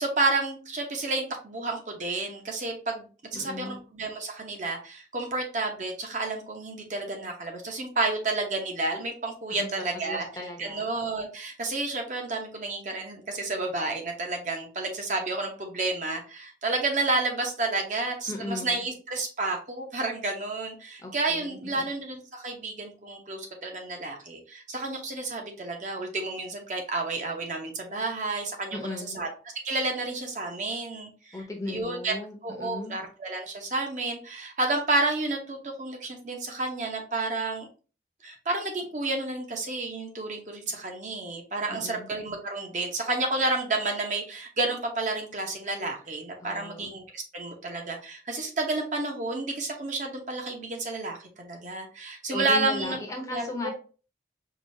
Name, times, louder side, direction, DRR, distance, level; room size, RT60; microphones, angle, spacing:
voice 1, 0.0-10.3 10.6-29.3 29.6-31.4 31.7-32.1 32.4-37.7 38.2-53.0 53.3-53.7, right 2 dB, 45° right, 2 dB, 0.7 m, -30 dB
voice 2, 3.3-3.8 9.5-9.7 9.9-10.9 18.3-18.8 21.0-21.9 28.7-29.2 31.3-32.9 41.7-42.1 46.4-46.9 52.3-53.7, left 2 dB, 20° left, 2 dB, 0.6 m, -37 dB
4.8 x 2.3 x 2.7 m, 0.36 s
head